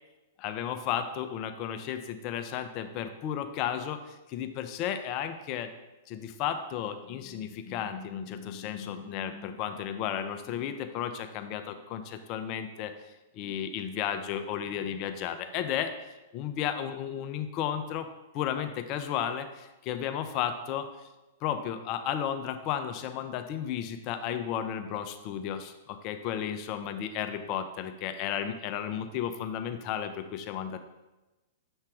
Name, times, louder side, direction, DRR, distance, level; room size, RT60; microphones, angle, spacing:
voice 1, 0.4-4.0 4.3-5.7 6.1-12.9 13.3-15.9 16.3-18.1 18.3-20.9 21.4-30.8, left 9 dB, 40° left, 8 dB, 0.5 m, -33 dB
7.0 x 3.2 x 4.7 m, 1.1 s
hypercardioid pair, 110°, 0 cm